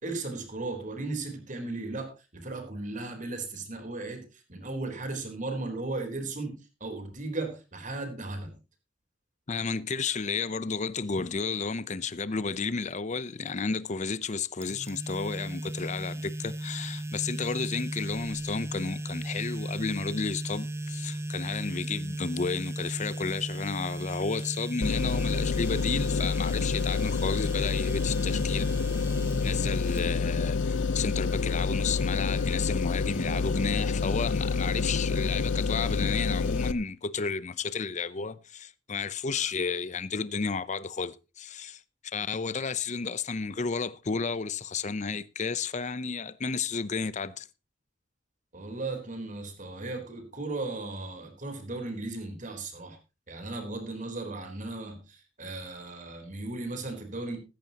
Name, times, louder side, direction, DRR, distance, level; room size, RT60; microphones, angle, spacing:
voice 1, 0.0-8.6 48.5-53.0 53.3-57.4, right 2 dB, 40° right, 3.8 m, -36 dB
voice 2, 9.5-28.6 29.4-41.8 42.1-47.5, left 5 dB, 40° left, 0.7 m, -32 dB
sound 1, 14.6-30.6, right 1 dB, 15° right, 0.8 m, -36 dB
sound 2, 24.8-36.7, left 4 dB, 80° left, 0.7 m, -28 dB
15.0 x 14.0 x 2.9 m
head